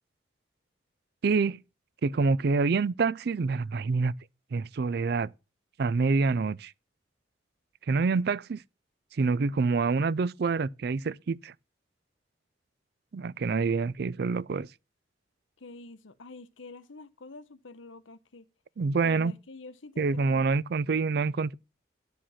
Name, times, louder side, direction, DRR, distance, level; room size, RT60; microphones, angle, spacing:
voice 1, 1.2-1.6 2.0-4.1 4.5-5.3 5.8-6.7 7.9-8.6 9.1-11.5 13.1-14.7 18.8-19.3 20.0-21.5, right 4 dB, 55° right, 0.4 m, -26 dB
voice 2, 15.6-18.5 19.0-20.5, left 3 dB, 90° left, 1.0 m, -47 dB
11.5 x 5.1 x 5.7 m
head